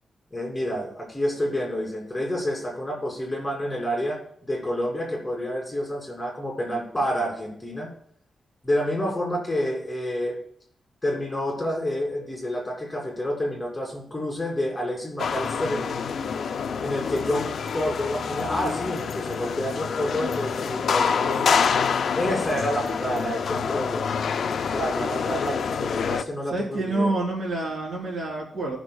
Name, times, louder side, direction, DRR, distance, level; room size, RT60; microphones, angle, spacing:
voice 1, 0.3-7.9 8.6-10.4 11.0-16.0 16.8-21.9 22.1-24.1 24.7-27.1, equal, 15° left, -2 dB, 2.8 m, -29 dB
sound 1, 15.2-26.2, left 6 dB, 75° left, 0.5 m, -27 dB
voice 2, 26.5-28.8, right 2 dB, 55° right, -3 dB, 3.4 m, -27 dB
18.0 x 6.1 x 2.3 m, 0.66 s
wide cardioid pair, 125°, 0 cm